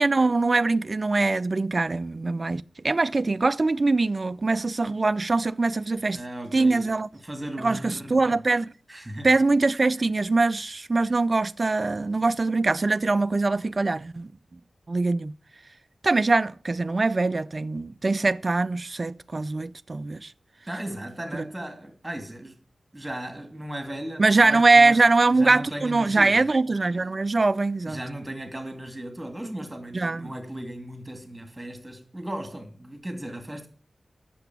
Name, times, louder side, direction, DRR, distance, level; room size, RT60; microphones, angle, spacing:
voice 1, 0.0-6.2 6.5-7.1 7.6-8.7 9.2-14.3 14.9-15.3 16.0-20.3 21.3-21.4 24.2-28.0 29.9-30.3, right 3 dB, 40° right, 0.4 m, -22 dB
voice 2, 6.1-6.9 7.2-8.3 8.9-9.4 20.7-22.6 22.9-25.0 25.3-26.5 27.8-33.7, right 1 dB, 15° right, 2.7 m, -36 dB
8.0 x 6.8 x 8.3 m
wide cardioid pair, 75°, 0 cm